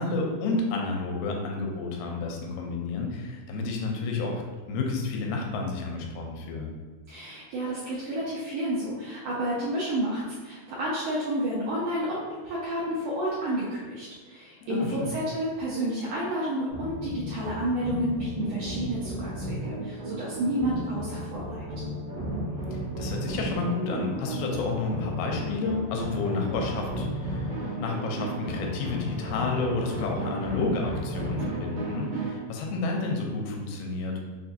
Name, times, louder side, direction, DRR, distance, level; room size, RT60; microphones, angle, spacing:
voice 1, 0.0-4.4 4.7-6.7 14.6-15.1 22.7-34.2, left 3 dB, 90° left, 1 dB, 2.6 m, -30 dB
voice 2, 7.1-21.8, right 1 dB, 85° right, -8 dB, 1.7 m, -30 dB
sound 1, 16.7-32.4, right 1 dB, 55° right, 1.1 m, -34 dB
5.9 x 2.3 x 2.7 m, 1.3 s
omnidirectional pair, 4.4 m